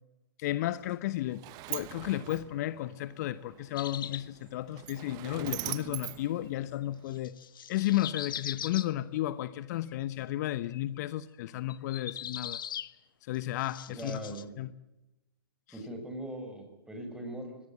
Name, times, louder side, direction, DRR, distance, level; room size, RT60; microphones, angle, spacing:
voice 1, 0.4-1.4 1.7-7.3 7.7-12.6 13.3-14.2 14.6-14.7, left 14 dB, 50° left, 15 dB, 0.9 m, -33 dB
Sliding door, 0.8-7.2, right 19 dB, 35° right, 1.0 m, -43 dB
sound 1, 3.7-4.3 7.1-8.9 9.9-10.2 10.7-11.0 11.7-12.9 13.3-14.4, left 10 dB, 65° left, 1.2 m, -40 dB
voice 2, 13.9-14.4 15.7-17.6, right 1 dB, 5° right, 5 dB, 6.1 m, -40 dB
24.0 x 19.0 x 8.7 m, 0.95 s
hypercardioid pair, 120°, 12 cm